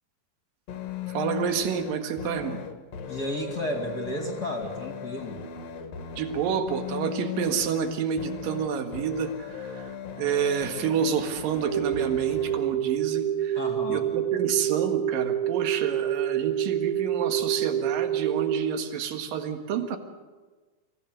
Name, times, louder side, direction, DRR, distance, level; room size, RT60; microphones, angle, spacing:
sound 1, 0.7-12.7, left 8 dB, 55° left, 2.1 m, -38 dB
voice 1, 1.1-2.6 6.2-13.6 13.9-20.0, right 7 dB, 65° right, 7 dB, 3.2 m, -29 dB
voice 2, 3.1-5.4 13.5-14.1, left 1 dB, 30° left, 3 dB, 2.2 m, -32 dB
sound 2, 11.6-18.6, right 11 dB, 80° right, 1.2 m, -27 dB
27.0 x 16.5 x 8.0 m, 1.3 s
omnidirectional pair, 4.7 m